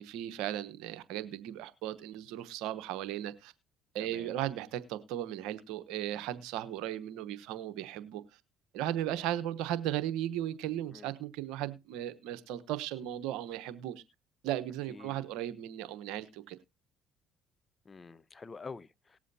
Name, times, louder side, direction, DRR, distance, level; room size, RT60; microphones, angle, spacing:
voice 1, 0.0-3.5 3.9-8.2 8.7-14.0 14.4-16.6, right 12 dB, 75° right, 0.9 m, -36 dB
voice 2, 4.0-4.3 10.9-11.1 14.9-15.2 17.9-19.2, left 4 dB, 30° left, 0.7 m, -47 dB
19.0 x 7.4 x 2.7 m
hypercardioid pair, 65°, 0 cm